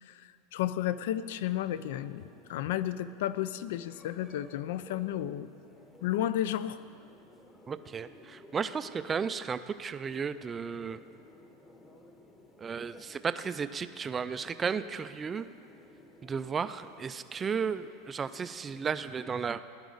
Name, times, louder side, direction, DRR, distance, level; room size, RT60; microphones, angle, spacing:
voice 1, 0.0-5.5 6.0-6.8, left 12 dB, 70° left, 15 dB, 0.4 m, -32 dB
sound 1, 1.1-19.1, left 1 dB, 15° left, 0.9 m, -56 dB
voice 2, 7.7-11.0 12.6-15.5 16.2-19.6, right 6 dB, 15° right, 12 dB, 0.3 m, -34 dB
17.5 x 11.0 x 4.0 m, 2.4 s
supercardioid pair, 165°, 0 cm